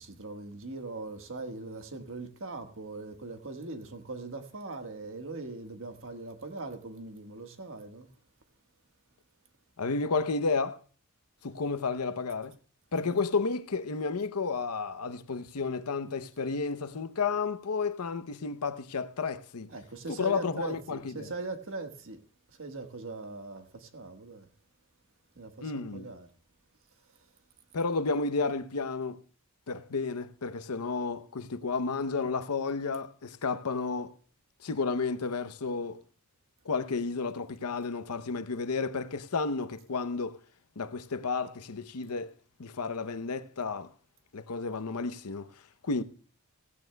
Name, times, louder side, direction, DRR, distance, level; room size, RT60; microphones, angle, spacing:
voice 1, 0.0-8.1 19.7-22.2 22.5-24.5 25.4-26.3, right 3 dB, 60° right, 1.5 m, -41 dB
voice 2, 9.8-10.8 11.4-12.6 12.9-19.7 20.1-21.3 25.6-26.1 27.7-29.2 29.7-34.1 34.6-36.0 36.6-40.4 40.8-42.3 42.6-43.9 44.3-45.5 45.8-46.0, left 4 dB, 85° left, 0.8 m, -32 dB
16.5 x 15.5 x 2.2 m
head